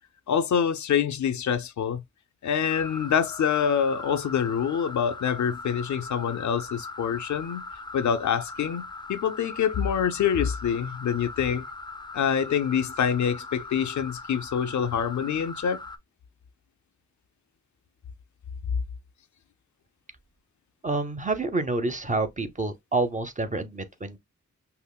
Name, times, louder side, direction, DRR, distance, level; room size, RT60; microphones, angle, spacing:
voice 1, 0.3-2.0 2.4-7.6 7.9-11.6 12.1-15.8, left 8 dB, 70° left, 0.5 m, -26 dB
sound 1, 2.7-16.0, left 3 dB, 15° left, 0.5 m, -40 dB
voice 2, 20.8-24.2, right 3 dB, 25° right, 0.7 m, -28 dB
5.6 x 2.0 x 2.2 m
cardioid pair, 65°, 30 cm